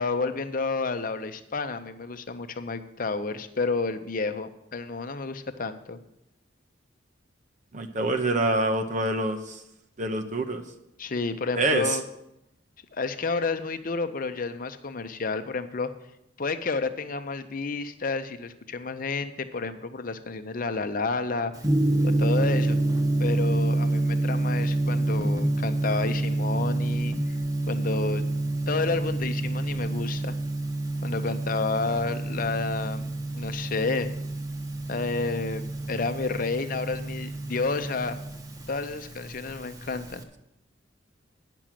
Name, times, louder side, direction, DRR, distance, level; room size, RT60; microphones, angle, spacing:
voice 1, 0.0-6.0 11.0-12.0 12.9-15.9 16.4-21.5 22.0-22.8 23.2-27.4 27.7-28.2 28.7-30.4 31.0-34.1 34.9-38.4 38.7-40.2, left 4 dB, 50° left, 9 dB, 0.7 m, -30 dB
voice 2, 7.7-9.6 10.0-10.6 11.6-12.0, right 2 dB, 40° right, 5 dB, 0.8 m, -26 dB
Gong, 21.6-40.2, right 2 dB, 20° right, 1.0 m, -28 dB
10.0 x 6.1 x 7.5 m, 0.84 s
head